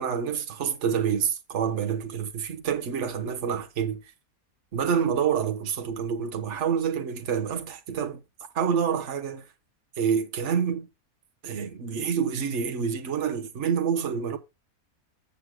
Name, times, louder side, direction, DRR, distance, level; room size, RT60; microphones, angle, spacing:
voice 1, 0.0-4.0 4.7-8.2 8.5-9.5 10.0-10.9 11.4-14.4, right 7 dB, 55° right, 1.4 m, -27 dB
15.0 x 6.5 x 2.2 m
omnidirectional pair, 1.5 m